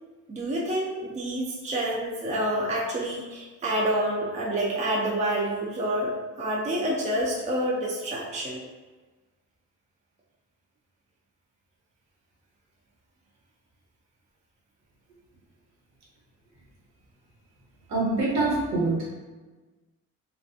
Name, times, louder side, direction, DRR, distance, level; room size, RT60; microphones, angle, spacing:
voice 1, 0.3-8.6, right 1 dB, 25° right, -3 dB, 0.4 m, -28 dB
voice 2, 17.9-18.9, right 3 dB, 65° right, -4 dB, 1.1 m, -24 dB
2.5 x 2.2 x 2.4 m, 1.3 s
cardioid pair, 90°, 30 cm